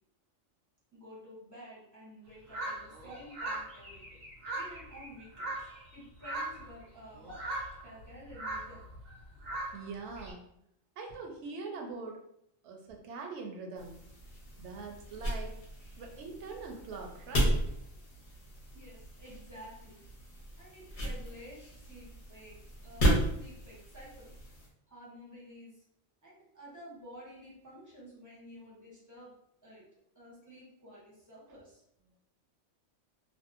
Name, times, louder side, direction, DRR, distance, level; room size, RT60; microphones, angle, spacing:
voice 1, 0.9-4.2 4.5-7.3 7.8-8.9 18.7-20.0 20.6-24.3 24.9-25.8 26.2-29.3 29.6-29.8 30.1-31.8, equal, 20° right, -7 dB, 0.6 m, -51 dB
sound 1, 2.5-6.0 6.2-6.8 7.2-10.3, right 2 dB, 90° right, 1.1 m, -40 dB
voice 2, 9.7-10.4 11.0-12.2 12.6-14.0 14.6-15.6 16.0-17.8, right 4 dB, 70° right, 2 dB, 0.8 m, -43 dB
sound 2, 13.8-24.7, equal, 50° left, 0.7 m, -35 dB
2.6 x 2.0 x 2.4 m, 0.75 s
omnidirectional pair, 1.3 m